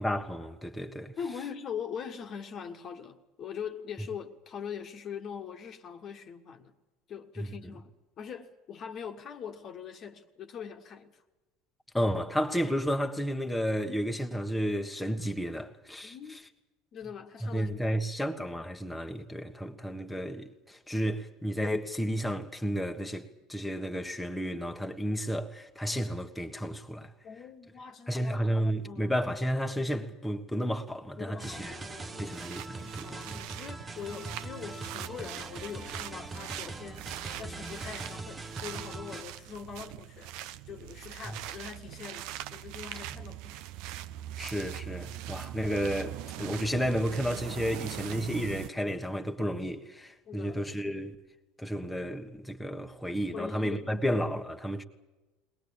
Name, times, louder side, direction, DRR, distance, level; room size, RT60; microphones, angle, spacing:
voice 1, 0.0-1.1 7.4-7.5 11.9-16.4 17.4-27.1 28.1-31.7 32.2-33.4 44.4-51.1 51.6-54.8, equal, 5° left, 1.5 m, -32 dB
voice 2, 1.2-6.7 7.1-11.2 16.0-16.4 16.9-18.0 27.2-29.1 31.2-32.4 33.0-37.1 37.4-43.6 50.2-50.6 53.3-54.1, left 7 dB, 40° left, 1.6 m, -42 dB
sound 1, 31.4-39.2, right 3 dB, 20° right, 1.5 m, -42 dB
sound 2, 32.2-48.7, right 13 dB, 55° right, 0.8 m, -42 dB
21.5 x 20.5 x 8.6 m
figure-of-eight pair, 70°, 0 cm